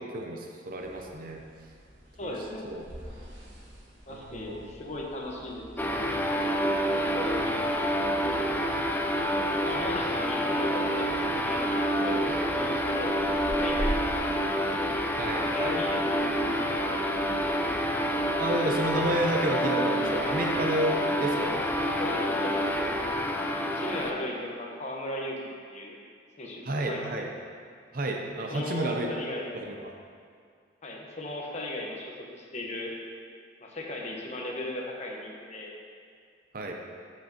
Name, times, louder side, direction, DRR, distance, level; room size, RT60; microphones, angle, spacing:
voice 1, 0.0-1.4 2.2-2.3 2.6-2.8 4.1-4.7 6.9-7.2 15.2-15.8 18.4-21.7 26.6-27.3 27.9-29.1 29.5-29.8 36.5-36.7, right 1 dB, 50° right, 1 dB, 0.7 m, -31 dB
sound 1, 0.8-18.4, equal, 85° right, 1.9 m, -44 dB
voice 2, 2.2-2.8 4.1-6.2 7.0-7.7 9.6-14.1 15.4-17.4 21.8-23.2 23.7-26.0 26.4-27.1 28.5-29.5 30.8-32.9 33.6-35.8, left 1 dB, 35° left, -1 dB, 1.1 m, -37 dB
sound 2, 5.8-24.1, equal, 10° left, 0.5 m, -28 dB
13.5 x 6.0 x 2.9 m, 2.2 s
head